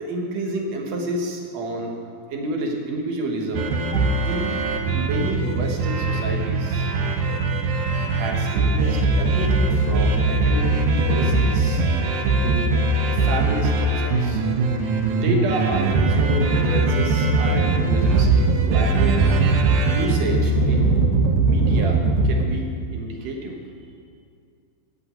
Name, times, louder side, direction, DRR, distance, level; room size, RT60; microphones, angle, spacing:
voice 1, 0.0-2.0 2.3-4.6 4.9-6.9 8.1-11.8 12.1-12.8 13.1-14.4 15.1-19.5 19.9-20.9 21.2-23.6, right 1 dB, 60° right, 1 dB, 2.2 m, -29 dB
sound 1, 3.5-22.4, right 3 dB, 75° right, 2.6 m, -20 dB
8.8 x 8.1 x 8.7 m, 2.3 s
omnidirectional pair, 4.2 m